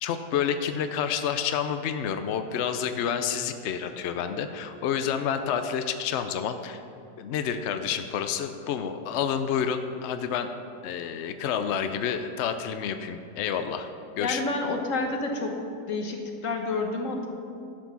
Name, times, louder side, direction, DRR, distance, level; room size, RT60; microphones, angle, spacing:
voice 1, 0.0-6.8 7.2-10.5 10.8-13.9 14.2-14.4, left 8 dB, 80° left, 8 dB, 0.6 m, -29 dB
voice 2, 14.2-15.6 15.9-17.3, left 3 dB, 50° left, 3 dB, 1.4 m, -29 dB
11.5 x 6.2 x 6.9 m, 2.5 s
omnidirectional pair, 1.8 m